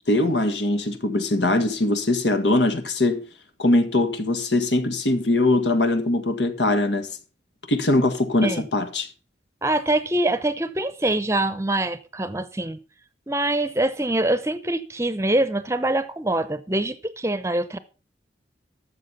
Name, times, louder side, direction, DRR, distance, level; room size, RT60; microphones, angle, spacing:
voice 1, 0.1-3.2 3.6-7.1 7.7-9.1, left 2 dB, 80° left, 1.8 m, -21 dB
voice 2, 9.6-12.8 13.3-17.8, right 1 dB, 15° right, 0.7 m, -24 dB
13.0 x 7.3 x 5.6 m
head